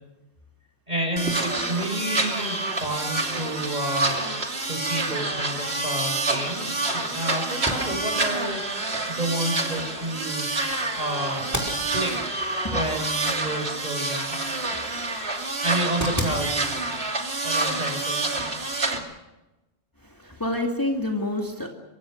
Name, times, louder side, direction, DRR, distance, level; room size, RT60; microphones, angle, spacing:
voice 1, 0.9-4.1 4.7-8.6 9.1-10.5 11.0-11.6 11.9-12.2 12.7-14.4 15.6-16.8 17.4-18.3, right 1 dB, 35° right, 4 dB, 6.1 m, -30 dB
sound 1, 1.2-19.0, right 2 dB, 60° right, 2.9 m, -28 dB
sound 2, 7.5-19.1, equal, 15° right, 5.1 m, -38 dB
voice 2, 20.0-21.7, left 1 dB, 15° left, 2 dB, 2.5 m, -28 dB
25.5 x 24.5 x 6.6 m, 1.0 s
omnidirectional pair, 1.2 m